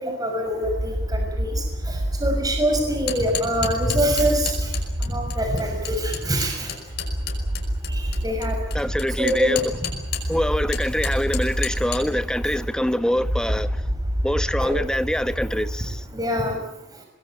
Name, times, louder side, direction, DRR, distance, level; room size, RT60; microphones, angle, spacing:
voice 1, 0.0-1.6 2.2-4.5 5.1-6.7 8.2-8.6 9.2-9.6 14.6-14.8 16.1-16.6, equal, 20° right, 6.1 m, -24 dB
sound 1, 0.6-16.2, equal, 60° right, 2.8 m, -28 dB
sound 2, 2.9-10.4 10.7-12.0, left 8 dB, 60° left, 5.5 m, -31 dB
voice 2, 8.7-9.7 10.3-13.7 14.2-16.0, equal, 5° left, 1.1 m, -24 dB
24.0 x 20.5 x 8.5 m
head